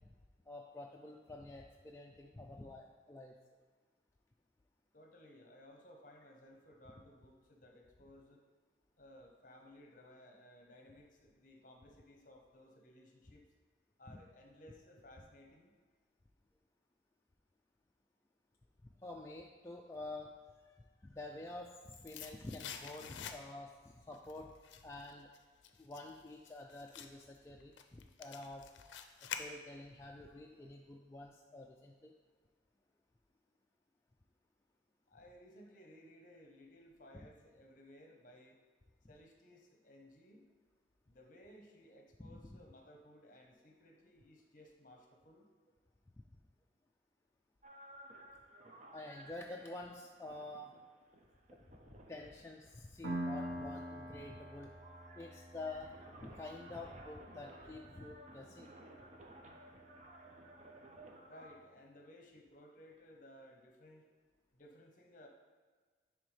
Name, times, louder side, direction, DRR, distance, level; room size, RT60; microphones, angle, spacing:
voice 1, 0.5-3.3 14.1-14.2 19.0-20.3 20.7-24.5 24.8-25.3 25.8-28.7 29.2-32.1 42.2-42.6 48.9-50.8 51.9-54.7 55.2-55.9 56.2-58.7, left 2 dB, 15° left, -1 dB, 0.3 m, -49 dB
voice 2, 4.9-8.4 9.0-13.4 14.0-15.7 35.1-38.6 39.1-40.4 41.1-45.5 61.2-64.1 64.5-65.3, left 1 dB, 45° left, 2 dB, 0.9 m, -59 dB
sound 1, 21.4-23.8 24.1-30.0 30.3-30.4, left 7 dB, 75° left, 0.5 m, -49 dB
sound 2, 47.6-61.5, right 1 dB, 40° right, 0.7 m, -57 dB
Piano, 53.0-60.4, right 1 dB, 75° right, 1.1 m, -47 dB
10.0 x 3.5 x 3.3 m, 1.5 s
head